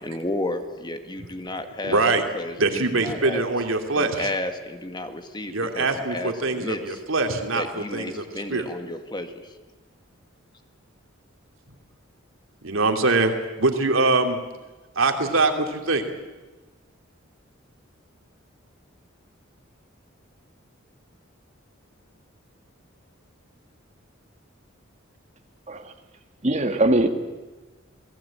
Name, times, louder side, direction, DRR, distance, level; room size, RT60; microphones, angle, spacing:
voice 1, 0.0-2.0 2.3-3.5 3.9-7.0 7.5-9.5, left 1 dB, 20° left, 7 dB, 1.8 m, -32 dB
voice 2, 1.8-2.2 2.6-4.3 5.5-8.2 8.5-8.7 12.6-13.3 13.6-14.4 15.0-16.0, right 3 dB, 80° right, 5 dB, 2.8 m, -23 dB
voice 3, 26.4-27.1, right 1 dB, 35° right, 6 dB, 2.1 m, -21 dB
28.0 x 18.5 x 8.7 m, 1.2 s
head